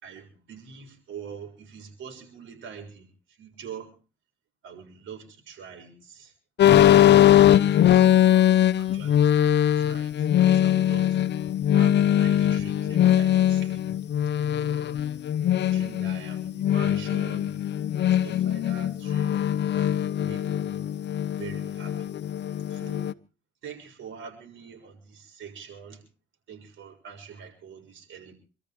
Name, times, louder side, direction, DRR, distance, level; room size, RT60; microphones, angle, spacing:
voice 1, 0.0-3.9 4.6-6.3 6.6-6.9 8.3-9.3 9.8-11.3 11.7-13.8 14.6-15.1 15.7-17.5 18.0-20.9 21.4-22.2 22.7-23.2 23.6-26.1 26.5-28.3, right 6 dB, 80° right, 4 dB, 6.9 m, -44 dB
sound 1, 6.6-23.1, left 11 dB, 60° left, 0.8 m, -21 dB
27.5 x 13.5 x 3.6 m, 0.35 s
cardioid pair, 90°, 20 cm